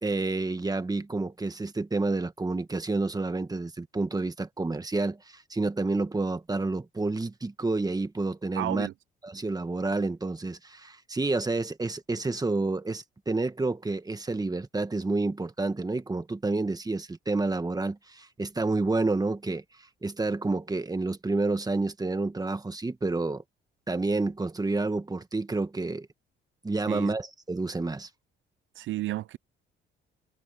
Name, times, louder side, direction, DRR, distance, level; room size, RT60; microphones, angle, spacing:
voice 1, 0.0-8.9 9.2-19.6 20.0-23.4 23.9-26.1 26.6-28.1, right 3 dB, 20° right, 1.6 m, -29 dB
voice 2, 8.6-8.9 26.9-27.1 28.8-29.4, right 15 dB, 75° right, 0.6 m, -32 dB
cardioid pair, 90°, 20 cm